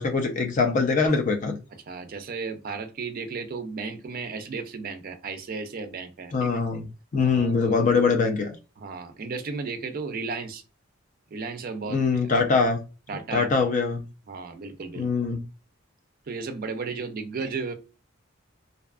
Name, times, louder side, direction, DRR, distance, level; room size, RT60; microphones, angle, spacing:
voice 1, 0.0-1.6 6.3-6.8 7.1-8.6 11.9-12.8 13.3-14.0 15.0-15.4, left 4 dB, 40° left, 0.4 m, -23 dB
voice 2, 1.9-6.3 7.2-8.0 8.8-10.6 11.3-12.3 13.1-13.5 14.3-15.1 16.3-17.7, right 4 dB, 45° right, 0.4 m, -34 dB
2.6 x 2.3 x 2.3 m
head